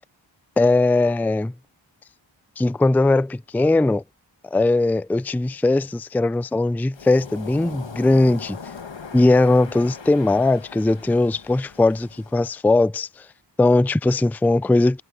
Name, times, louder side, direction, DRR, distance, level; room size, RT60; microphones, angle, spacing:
voice 1, 0.6-1.5 2.6-4.0 4.5-8.6 9.1-13.1 13.6-15.0, left 2 dB, 5° left, 0.4 m, -19 dB
Waves surf, 6.9-12.4, left 5 dB, 75° left, 1.4 m, -40 dB
wide cardioid pair, 45°, 46 cm